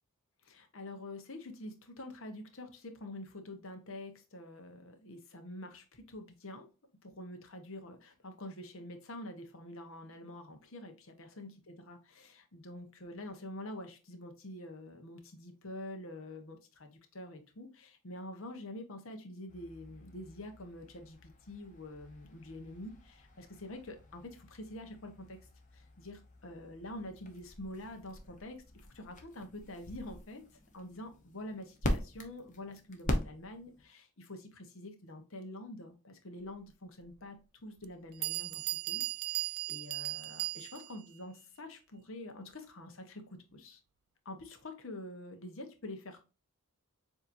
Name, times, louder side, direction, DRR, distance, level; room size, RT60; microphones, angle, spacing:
voice 1, 0.4-6.7 7.0-25.4 25.7-30.4 30.7-37.4 37.6-43.8 44.2-46.3, left 1 dB, 60° left, 5 dB, 1.0 m, -46 dB
sound 1, 19.5-33.9, left 1 dB, 35° left, 0.8 m, -42 dB
Bell, 37.0-37.1 37.8-37.9 38.2-41.0, right 17 dB, 75° right, 0.3 m, -37 dB
7.1 x 2.8 x 2.6 m, 0.32 s
head